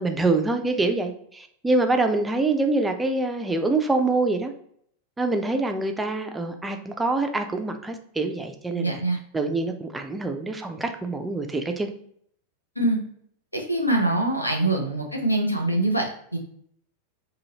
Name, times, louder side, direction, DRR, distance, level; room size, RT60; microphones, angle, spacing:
voice 1, 0.0-4.5 5.2-9.0 9.3-11.9, right 2 dB, 10° right, 5 dB, 0.4 m, -25 dB
voice 2, 8.8-9.2 12.8-13.0 13.5-16.4, right 1 dB, 90° left, 1 dB, 0.6 m, -24 dB
2.7 x 2.5 x 2.8 m, 0.66 s
figure-of-eight pair, 90°, 0 cm